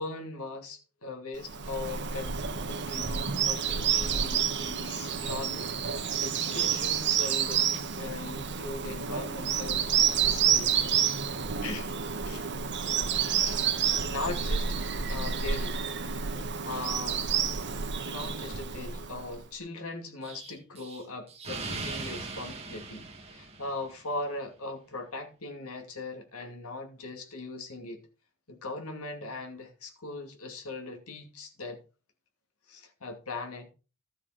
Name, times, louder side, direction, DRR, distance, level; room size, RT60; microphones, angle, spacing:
voice 1, 0.0-7.6 7.9-10.9 11.6-12.0 12.2-12.5 13.4-15.8 16.6-17.2 18.0-28.0 28.5-31.8 32.7-33.7, left 2 dB, 70° left, 2.5 m, -39 dB
Bird vocalization bird call bird song, 1.4-19.4, right 7 dB, 50° right, 1.5 m, -29 dB
Explosion, 20.2-24.1, right 3 dB, 30° right, 2.4 m, -40 dB
13.0 x 6.9 x 5.0 m
head